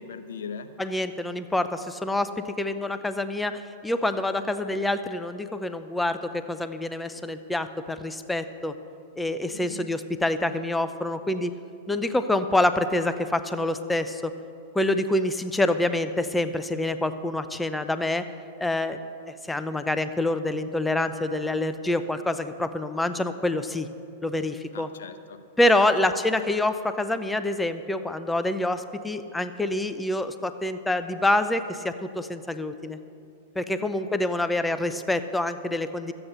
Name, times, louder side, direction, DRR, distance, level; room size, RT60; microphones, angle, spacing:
voice 1, 0.0-0.8 9.5-9.9 24.7-25.4 26.0-26.1 33.8-34.1, left 6 dB, 75° left, 9 dB, 0.8 m, -40 dB
voice 2, 0.8-8.7 9.2-11.5 11.9-14.3 14.7-18.3 18.6-19.0 19.5-23.9 24.2-24.9 25.6-33.0 33.6-36.1, left 1 dB, 5° left, 10 dB, 0.5 m, -26 dB
13.0 x 8.9 x 6.6 m, 2.5 s
hypercardioid pair, 115°, 0 cm